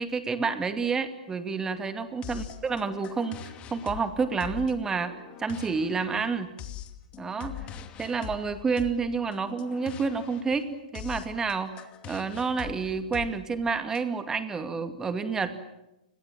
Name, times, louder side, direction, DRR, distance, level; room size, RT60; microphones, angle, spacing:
voice 1, 0.0-3.4 3.7-6.5 7.2-7.7 8.0-15.6, right 5 dB, 15° right, 9 dB, 2.4 m, -29 dB
sound 1, 2.2-14.0, left 9 dB, 25° left, 2.5 m, -43 dB
30.0 x 22.5 x 7.5 m, 0.94 s
hypercardioid pair, 135°, 4 cm